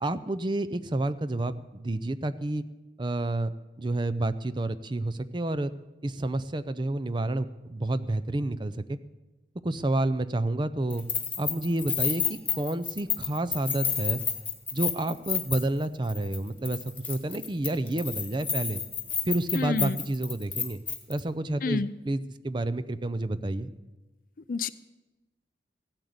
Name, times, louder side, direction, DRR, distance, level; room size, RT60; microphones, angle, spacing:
voice 1, 0.0-2.6 3.0-5.7 6.0-9.0 9.6-11.0 11.4-14.2 14.7-16.8 17.1-18.8 19.3-20.8 21.1-23.7, right 2 dB, 25° right, 14 dB, 0.5 m, -29 dB
Keys jangling, 10.9-16.4 16.6-21.2, left 7 dB, 10° left, 1.7 m, -30 dB
voice 2, 19.6-20.0 21.6-21.9 24.5-24.7, left 4 dB, 50° left, 16 dB, 0.5 m, -28 dB
16.0 x 8.9 x 8.0 m, 1.1 s
head